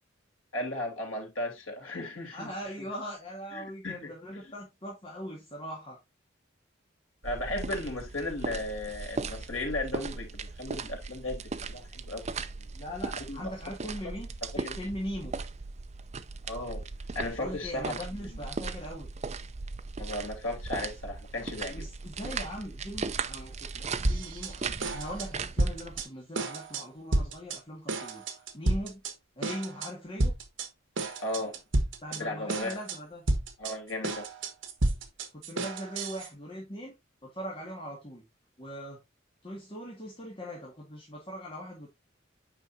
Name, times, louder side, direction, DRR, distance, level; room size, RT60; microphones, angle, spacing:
voice 1, 0.5-2.5 2.8-2.9 3.5-4.5 7.2-12.2 12.6-12.7 13.3-13.5 14.0-14.2 14.5-14.8 16.5-16.8 17.1-18.4 20.0-21.8 31.2-31.6 32.1-32.8 33.6-34.3, left 2 dB, 85° left, 3.0 m, -36 dB
voice 2, 2.3-6.0 12.7-14.3 14.6-15.3 17.4-19.1 21.7-28.2 28.5-29.0 29.4-30.3 32.0-33.3 35.3-36.9 37.2-38.2 38.6-39.0 39.4-41.9, equal, 30° left, 2.0 m, -40 dB
sound 1, 7.2-26.0, right 4 dB, 35° right, 0.5 m, -38 dB
sound 2, 24.0-24.5 24.8-26.1 26.3-26.8 27.1-27.6 27.9-29.1 29.4-29.9 30.2-30.7 31.0-32.2 32.5-33.0 33.3-36.3, right 2 dB, 70° right, 1.4 m, -30 dB
9.0 x 5.3 x 2.7 m
head